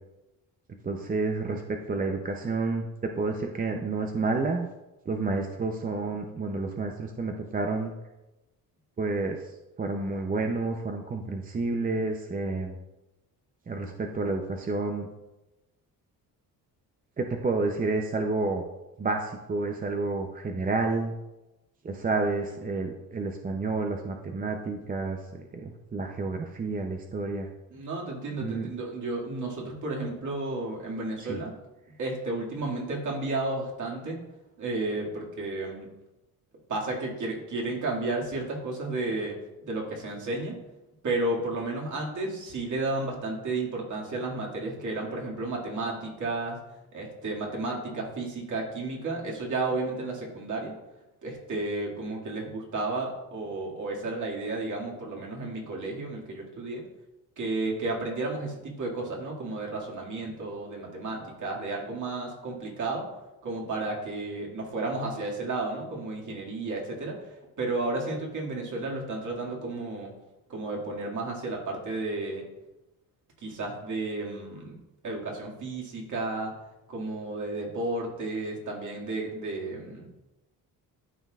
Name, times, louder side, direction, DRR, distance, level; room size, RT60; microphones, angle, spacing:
voice 1, 0.8-2.9 3.2-4.7 5.1-7.9 9.0-9.4 9.8-12.8 13.7-15.1 17.2-18.6 19.0-21.1 21.8-27.5 28.4-28.7 31.3-31.4, right 3 dB, 20° right, 3 dB, 0.6 m, -30 dB
voice 2, 27.7-31.6 32.0-34.2 34.6-35.9 36.7-39.3 39.6-40.6 41.0-46.6 46.9-50.7 51.2-56.8 57.4-63.0 63.4-70.1 70.5-72.4 73.4-74.8 75.0-76.5 76.9-80.1, right 2 dB, 50° right, -2 dB, 2.1 m, -32 dB
12.5 x 4.5 x 2.4 m, 1.0 s
cardioid pair, 105°, 39 cm